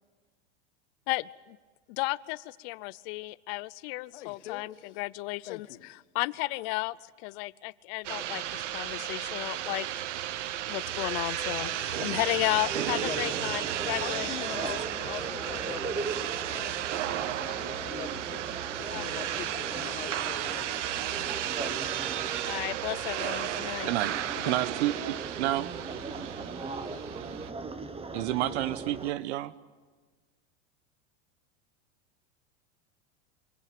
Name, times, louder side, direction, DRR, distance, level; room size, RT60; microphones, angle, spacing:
voice 1, 1.1-1.6 1.9-7.0 7.2-9.9 10.7-14.3 18.9-19.2 22.4-23.9, left 22 dB, 55° left, 20 dB, 0.7 m, -34 dB
voice 2, 4.1-5.0 5.5-5.9 11.6-12.2 12.9-13.4 14.0-16.8 17.0-21.1 21.5-22.1 24.4-24.6, left 12 dB, 80° left, 9 dB, 1.7 m, -43 dB
sound 1, 8.0-27.5, right 12 dB, 90° right, 0.9 m, -34 dB
sound 2, 11.9-29.1, right 4 dB, 15° right, 1.4 m, -39 dB
voice 3, 23.8-24.2 24.4-25.7 28.1-29.5, right 14 dB, 70° right, 17 dB, 1.1 m, -30 dB
25.5 x 18.0 x 9.2 m, 1.4 s
supercardioid pair, 115°, 35 cm